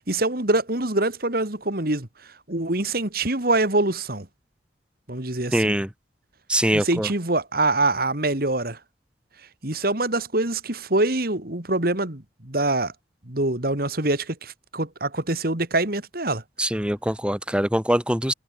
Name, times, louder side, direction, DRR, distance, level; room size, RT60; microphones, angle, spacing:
voice 1, 0.1-2.1 2.5-4.3 5.1-5.7 6.7-8.8 9.6-12.9 13.3-16.4, right 2 dB, 55° right, 3.0 m, -24 dB
voice 2, 5.5-5.9 6.5-7.1 16.6-18.3, right 1 dB, 5° right, 1.9 m, -23 dB
head